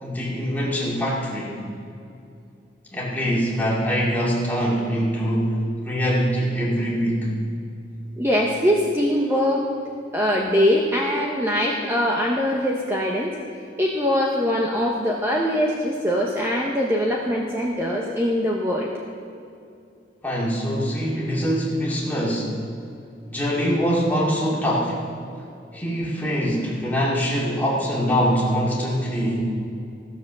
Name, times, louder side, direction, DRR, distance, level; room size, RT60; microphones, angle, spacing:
voice 1, 0.0-1.6 2.9-7.3 20.2-22.5 23.3-25.0 25.7-29.4, equal, 10° left, -5 dB, 2.3 m, -23 dB
voice 2, 8.2-9.7 10.1-13.4 13.8-18.9, equal, 15° right, -2 dB, 0.9 m, -22 dB
15.0 x 7.1 x 6.8 m, 2.5 s
head